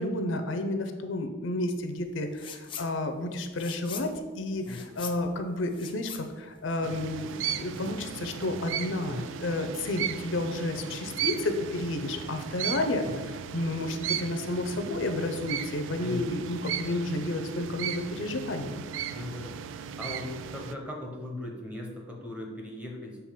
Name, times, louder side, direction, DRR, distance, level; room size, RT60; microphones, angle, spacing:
voice 1, 0.0-13.1 13.5-18.8, left 2 dB, 75° left, 7 dB, 0.6 m, -31 dB
sound 1, 2.3-2.9 3.2-7.2, left 8 dB, 25° left, 0.4 m, -43 dB
sound 2, 6.8-20.7, right 9 dB, 75° right, 0.3 m, -36 dB
voice 2, 16.0-16.3 19.1-19.6 20.0-23.2, left 2 dB, 5° right, 0 dB, 0.8 m, -38 dB
7.0 x 2.9 x 5.0 m, 1.4 s
head